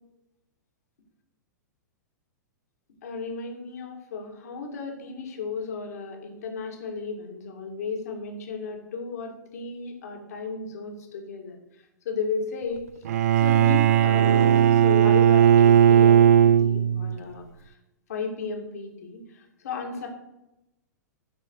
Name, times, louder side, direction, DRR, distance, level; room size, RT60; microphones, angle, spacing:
voice 1, 3.0-11.6 12.1-12.8 13.4-17.5 18.1-19.2 19.6-20.1, left 4 dB, 55° left, 3 dB, 2.5 m, -34 dB
Bowed string instrument, 13.1-17.2, right 10 dB, 55° right, 0.4 m, -17 dB
14.0 x 5.9 x 4.8 m, 0.91 s
figure-of-eight pair, 105°, 10 cm